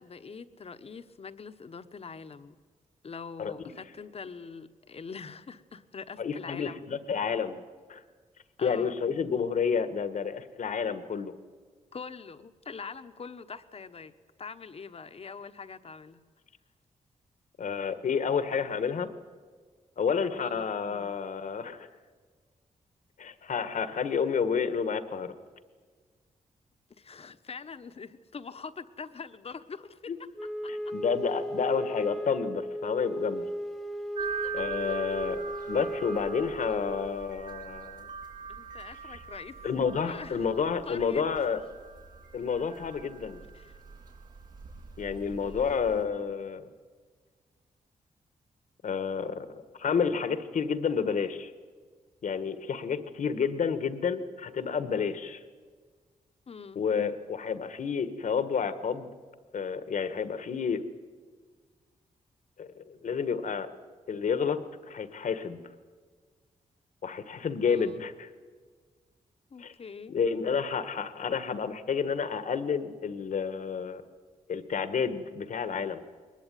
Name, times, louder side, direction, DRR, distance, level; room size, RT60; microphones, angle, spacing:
voice 1, 0.0-2.5 3.0-6.9 8.6-8.9 11.9-14.1 14.4-16.2 20.4-20.7 27.0-30.0 34.2-34.6 38.5-39.6 40.0-40.4 40.9-41.2 43.5-43.8 45.4-45.8 56.5-56.8 67.7-68.1 69.5-70.2, left 5 dB, 45° left, 10 dB, 1.2 m, -43 dB
voice 2, 6.2-7.6 7.9-8.0 8.6-11.3 17.6-19.1 20.0-21.9 23.2-25.3 30.1-30.2 30.7-33.5 34.5-38.1 39.6-41.6 42.3-43.4 45.0-46.7 48.8-51.5 52.2-55.4 56.7-59.1 59.5-60.8 62.6-63.7 64.1-65.6 67.0-68.3 69.6-69.7 70.1-74.0 74.5-76.0, left 6 dB, 65° left, 11 dB, 1.6 m, -30 dB
Wind instrument woodwind instrument, 30.4-37.2, equal, ahead, 0.9 m, -36 dB
sound 1, 34.1-46.0, right 6 dB, 85° right, 7.7 m, -42 dB
22.0 x 20.0 x 9.3 m, 1.6 s
cardioid pair, 90°, 14 cm